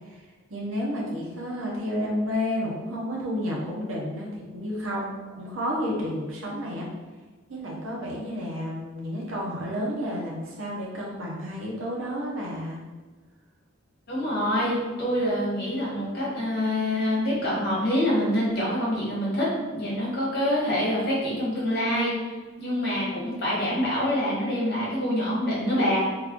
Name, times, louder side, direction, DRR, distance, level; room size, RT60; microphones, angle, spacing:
voice 1, 0.5-6.9 7.5-12.8, equal, 75° right, -3 dB, 0.9 m, -31 dB
voice 2, 14.1-19.5 19.7-22.1 22.6-26.0, left 1 dB, 50° left, -6 dB, 1.3 m, -26 dB
3.1 x 2.5 x 3.6 m, 1.3 s
head